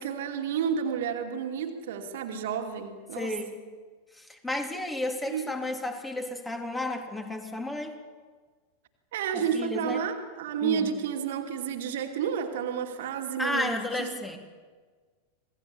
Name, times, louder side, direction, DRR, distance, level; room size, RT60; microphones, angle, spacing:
voice 1, 0.0-3.3 5.3-5.5 9.1-14.1, right 7 dB, 55° right, 5 dB, 2.7 m, -31 dB
voice 2, 3.1-3.6 4.1-8.0 9.3-10.0 10.6-10.9 13.4-14.4, left 2 dB, 10° left, 3 dB, 3.7 m, -32 dB
27.0 x 20.0 x 8.9 m, 1.5 s
figure-of-eight pair, 90°, 0 cm